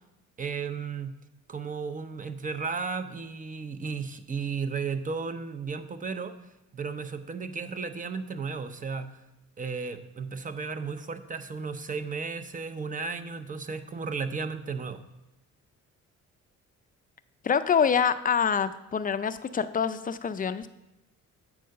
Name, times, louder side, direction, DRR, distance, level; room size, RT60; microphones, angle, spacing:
voice 1, 0.4-1.1 1.5-6.3 6.7-9.1 9.6-15.0, right 5 dB, 25° right, 11 dB, 0.6 m, -34 dB
voice 2, 17.4-20.7, left 7 dB, 30° left, 12 dB, 0.4 m, -26 dB
7.6 x 4.7 x 6.4 m, 0.95 s
cardioid pair, 90°, 30 cm